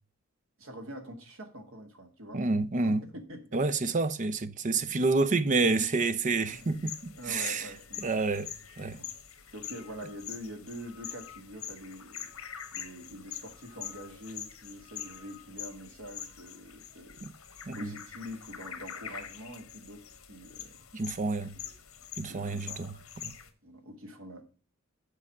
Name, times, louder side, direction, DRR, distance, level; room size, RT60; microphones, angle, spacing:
voice 1, 0.6-2.4 2.8-3.0 3.3-3.8 6.5-6.8 7.2-8.2 9.0-9.1 9.5-12.3 12.7-17.2 17.7-20.8 21.6-21.7 22.3-22.8 23.6-24.4, equal, 70° right, 2.0 m, -45 dB
voice 2, 2.3-3.0 3.5-7.7 8.0-8.5 8.8-9.0 17.2-17.3 17.7-17.9 20.9-21.5 22.2-22.9 23.2-23.3, right 3 dB, 35° right, 0.6 m, -28 dB
sound 1, 6.5-23.5, left 9 dB, 80° left, 1.3 m, -44 dB
7.7 x 4.9 x 7.2 m
head